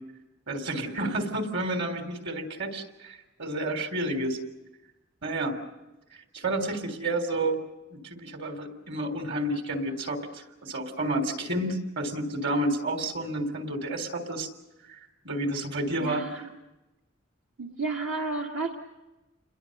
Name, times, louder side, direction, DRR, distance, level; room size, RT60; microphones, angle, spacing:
voice 1, 0.5-4.4 5.2-5.6 6.3-7.6 7.9-14.5 14.9-15.0 15.2-16.4, right 1 dB, 60° right, 6 dB, 3.7 m, -30 dB
voice 2, 16.0-16.4 17.6-18.8, right 3 dB, 75° right, 0 dB, 2.0 m, -32 dB
29.0 x 22.0 x 6.7 m, 1.0 s
head